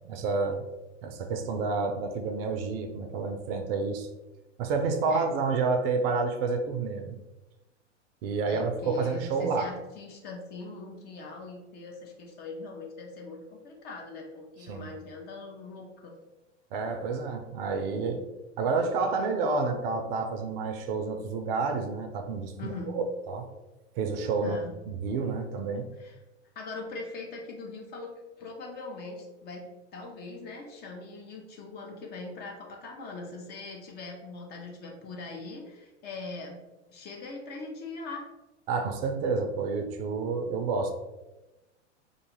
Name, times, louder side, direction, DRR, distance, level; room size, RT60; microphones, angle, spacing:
voice 1, 0.0-0.6 1.0-4.1 4.6-7.2 8.2-9.7 14.7-14.9 16.7-18.2 18.6-23.5 24.0-25.9 38.7-40.9, right 4 dB, 55° right, 5 dB, 0.5 m, -29 dB
voice 2, 8.5-16.1 22.6-23.0 24.4-24.7 26.0-26.1 26.6-28.1 28.4-29.6 29.9-36.6 36.9-38.2, left 3 dB, 30° left, 1 dB, 0.5 m, -41 dB
2.5 x 2.3 x 3.0 m, 1.0 s
hypercardioid pair, 110°, 36 cm